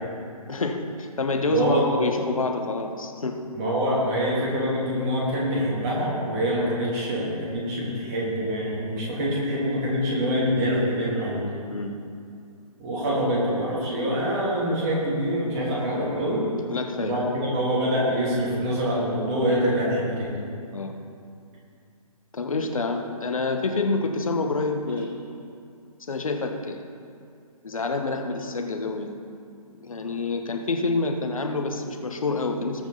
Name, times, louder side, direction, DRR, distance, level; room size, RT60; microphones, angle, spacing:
voice 1, 0.5-3.4 11.7-11.9 16.7-17.2 20.7-20.9 22.3-25.1 26.1-26.8 27.6-29.1 29.8-32.9, left 3 dB, 60° left, 4 dB, 1.4 m, -27 dB
voice 2, 1.4-1.8 3.5-11.4 12.8-16.4 17.0-20.3, equal, 25° right, -5 dB, 3.0 m, -25 dB
19.5 x 6.6 x 4.2 m, 2.4 s
figure-of-eight pair, 140°, 19 cm